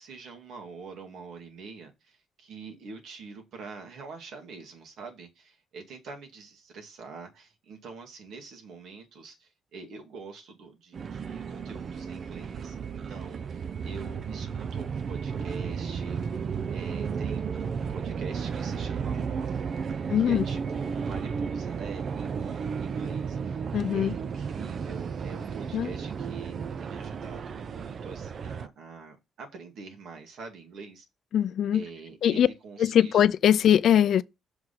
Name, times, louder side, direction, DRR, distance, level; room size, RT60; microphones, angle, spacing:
voice 1, 0.0-16.2 16.7-19.5 20.1-31.1 31.7-33.2, right 4 dB, 75° right, 2.3 m, -45 dB
sound 1, 10.9-28.7, right 6 dB, 50° right, 0.5 m, -33 dB
voice 2, 20.1-20.4 23.7-24.1 25.7-25.9 31.3-31.8 32.2-32.5 32.8-34.2, left 10 dB, 65° left, 0.5 m, -21 dB
6.3 x 4.7 x 5.7 m
cardioid pair, 90°, 0 cm